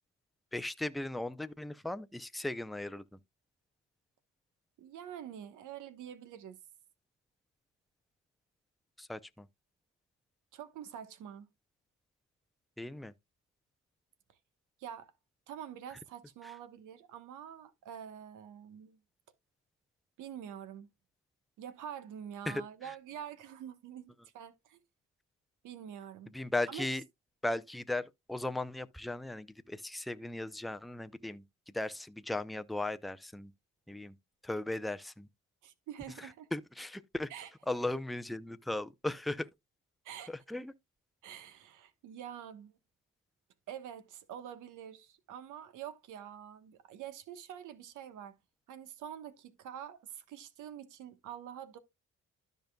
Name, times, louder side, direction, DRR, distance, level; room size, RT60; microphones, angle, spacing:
voice 1, 0.5-3.2 9.0-9.5 12.8-13.1 22.5-22.6 26.3-27.0 27.4-31.4 31.7-33.5 33.9-34.1 34.4-35.3 36.5-37.3 37.7-39.5 40.5-40.7, left 2 dB, ahead, 0.5 m, -37 dB
voice 2, 4.8-6.6 10.5-11.5 14.3-14.4 14.8-15.1 15.5-19.0 20.2-20.9 21.6-24.8 25.6-26.3 26.7-26.9 35.6-36.5 37.3-37.5 40.0-40.4 41.2-42.8 43.7-48.4 48.7-51.8, right 9 dB, 85° right, 1.2 m, -46 dB
13.0 x 5.2 x 2.2 m
cardioid pair, 90°, 30 cm